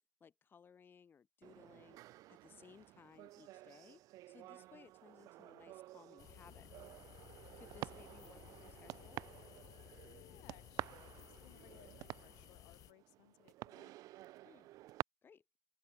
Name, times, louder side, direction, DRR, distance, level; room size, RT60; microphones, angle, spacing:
voice 1, 0.2-6.7 7.5-9.3 14.4-14.7 15.2-15.4, left 6 dB, 35° left, 2.5 m, -62 dB
sound 1, 1.4-15.0, right 16 dB, 65° right, 0.5 m, -51 dB
sound 2, 6.2-12.9, left 14 dB, 60° left, 0.7 m, -58 dB
voice 2, 7.7-8.0 10.0-13.9, left 26 dB, 85° left, 4.3 m, -65 dB
open air
cardioid pair, 110°, 6 cm